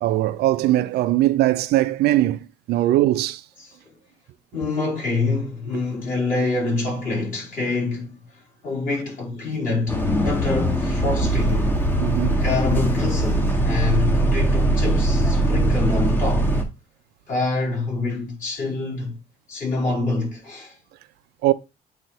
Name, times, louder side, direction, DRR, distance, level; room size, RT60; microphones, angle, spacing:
voice 1, 0.0-3.4 12.0-12.4 21.4-21.5, right 15 dB, 75° right, 0.5 m, -20 dB
voice 2, 3.6-3.9 4.5-11.9 12.4-16.5 17.3-19.2 19.5-20.8, left 3 dB, 50° left, 4.8 m, -26 dB
Bus, 9.9-16.6, right 1 dB, 10° left, 1.2 m, -21 dB
8.7 x 3.3 x 4.4 m
cardioid pair, 110°, 17 cm